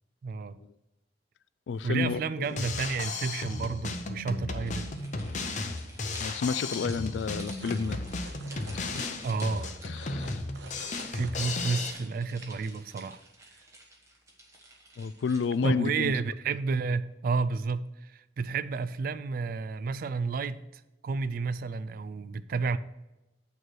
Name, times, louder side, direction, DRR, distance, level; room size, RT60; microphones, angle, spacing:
voice 1, 0.2-0.6 1.8-5.0 9.2-9.7 10.8-13.2 15.6-20.6 21.0-22.8, right 4 dB, 50° right, 0.3 m, -31 dB
voice 2, 1.7-2.5 6.2-8.0 8.7-9.1 9.8-10.4 15.0-16.2, left 5 dB, 90° left, 0.3 m, -31 dB
Drum kit, 2.5-11.9, left 3 dB, 45° left, 0.6 m, -35 dB
sound 1, 4.7-15.8, right 1 dB, 15° right, 1.2 m, -50 dB
sound 2, 6.1-6.2 6.4-11.8, right 3 dB, 85° right, 0.7 m, -50 dB
8.8 x 3.2 x 6.2 m
head